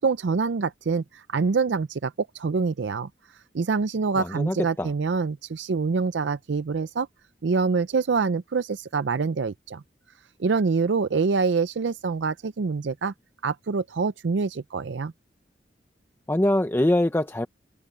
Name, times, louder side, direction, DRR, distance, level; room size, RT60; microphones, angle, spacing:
voice 1, 0.0-3.1 3.5-7.1 7.4-9.8 10.4-13.1 13.4-15.1, right 4 dB, 75° right, 0.5 m, -25 dB
voice 2, 4.2-4.9 16.3-17.5, left 1 dB, 10° left, 0.6 m, -23 dB
head